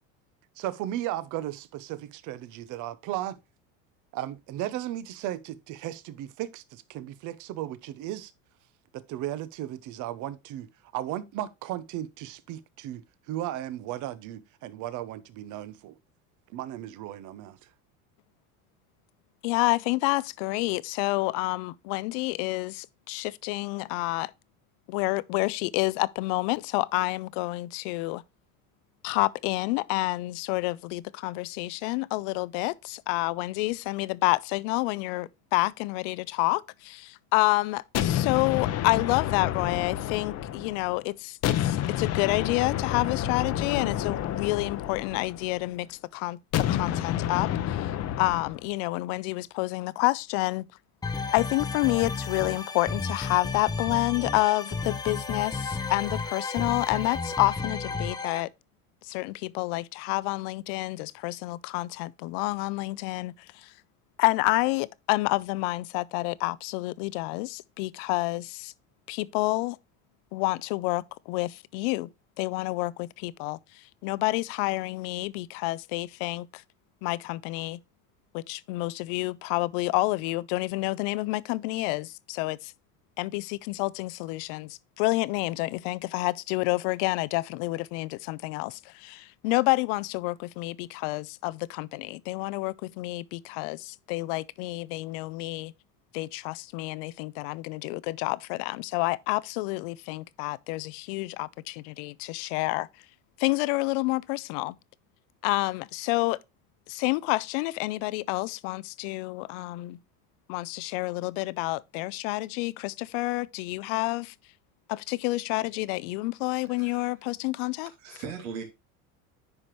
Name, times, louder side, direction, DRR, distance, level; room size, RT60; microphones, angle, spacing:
voice 1, 0.6-3.4 4.1-8.3 8.9-10.7 10.9-16.0 16.5-17.7, right 13 dB, 50° right, 0.8 m, -35 dB
voice 2, 19.4-24.3 24.9-28.2 29.0-47.8 48.2-50.7 51.3-58.5 59.0-63.3 63.6-63.7 64.2-68.7 69.1-69.8 70.3-72.1 72.4-73.6 74.0-76.6 77.0-77.8 78.3-82.7 83.2-95.7 96.1-102.9 103.4-104.8 105.4-106.4 106.9-110.0 110.5-114.3 114.9-117.9, left 22 dB, 70° left, 0.6 m, -29 dB
sound 1, 37.9-41.0 41.4-45.7 46.5-48.6, left 11 dB, 40° left, 0.8 m, -29 dB
sound 2, 51.0-58.4, left 4 dB, 10° left, 0.7 m, -33 dB
voice 3, 116.6-117.1 118.0-118.6, right 6 dB, 85° right, 2.6 m, -39 dB
9.7 x 5.0 x 3.1 m
supercardioid pair, 120°, 38 cm